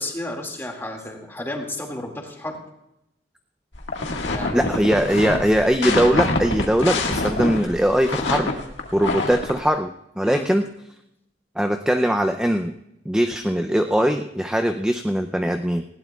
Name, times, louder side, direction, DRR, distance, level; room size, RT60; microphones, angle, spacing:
voice 1, 0.0-2.6 4.3-4.9 10.2-10.5, left 1 dB, 15° left, 1 dB, 2.1 m, -32 dB
sound 1, 3.7-9.6, left 2 dB, 90° left, 1.7 m, -25 dB
voice 2, 4.5-8.5 8.9-10.7 11.6-12.7 13.1-15.8, equal, 5° right, 6 dB, 0.4 m, -21 dB
19.5 x 16.5 x 2.3 m, 0.85 s
head